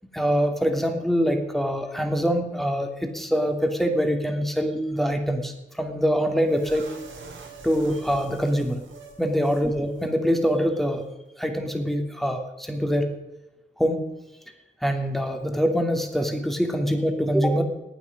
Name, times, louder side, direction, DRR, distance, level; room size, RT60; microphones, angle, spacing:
voice 1, 0.1-6.9 7.6-8.8 9.2-11.1 11.4-13.1 13.8-14.1 14.8-17.6, equal, ahead, 4 dB, 2.9 m, -24 dB
sound 1, 6.5-9.7 9.9-10.1 10.4-10.6, right 4 dB, 80° right, 3.1 m, -44 dB
19.5 x 9.2 x 5.4 m, 1.0 s
cardioid pair, 60°, 20 cm